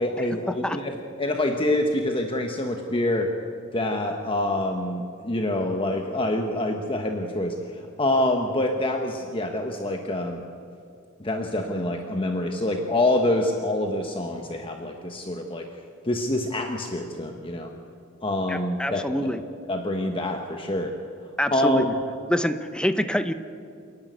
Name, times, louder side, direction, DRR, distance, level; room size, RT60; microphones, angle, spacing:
voice 1, 0.0-3.3 3.7-10.4 11.2-15.6 16.0-17.7 18.2-19.3 19.7-20.9 21.5-21.9, left 1 dB, 25° left, 3 dB, 1.2 m, -26 dB
voice 2, 18.5-19.4 21.4-21.9 22.3-23.3, equal, 5° left, 9 dB, 0.8 m, -25 dB
29.0 x 11.0 x 9.4 m, 2.4 s
head